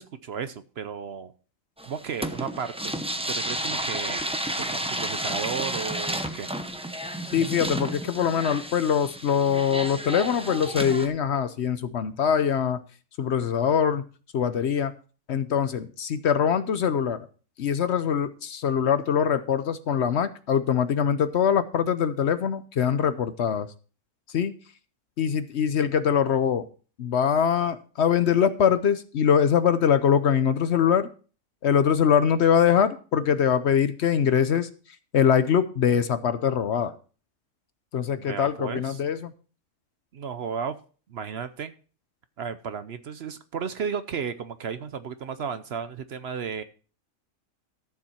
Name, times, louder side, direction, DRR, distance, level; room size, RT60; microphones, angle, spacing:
voice 1, 0.0-1.3 1.8-3.0 3.3-6.5 38.1-39.0 40.1-40.8 41.1-41.7 42.4-46.6, right 6 dB, 55° right, 12 dB, 0.8 m, -34 dB
sound 1, 1.8-11.1, right 1 dB, 5° right, 0.5 m, -32 dB
voice 2, 7.3-12.8 13.2-14.0 14.3-14.9 15.3-17.3 17.6-23.7 24.3-24.5 25.2-26.7 27.0-31.1 31.6-34.7 35.1-36.9 37.9-39.3, left 8 dB, 60° left, 12 dB, 0.9 m, -23 dB
13.0 x 7.3 x 4.3 m, 0.38 s
omnidirectional pair, 1.4 m